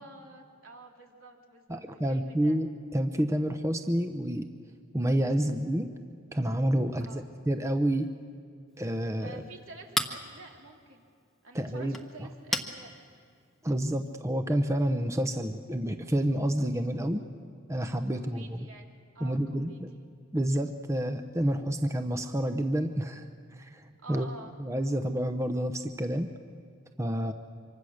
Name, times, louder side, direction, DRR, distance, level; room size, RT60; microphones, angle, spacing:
voice 1, 0.0-1.8 2.1-2.6 7.0-7.2 9.2-11.0 11.4-12.9 18.0-20.0 24.0-24.5, right 2 dB, 80° right, 1 dB, 3.0 m, -49 dB
voice 2, 1.7-2.7 2.9-4.5 4.9-5.9 6.3-8.1 8.8-9.4 11.5-12.3 13.6-17.2 17.7-18.7 19.2-19.9 20.3-23.8 24.1-24.3 24.6-26.3 27.0-27.3, right 1 dB, 15° right, 7 dB, 0.8 m, -29 dB
Chink clink, 8.7-14.2, left 1 dB, ahead, 1.1 m, -39 dB
25.5 x 24.5 x 6.5 m, 2.2 s
head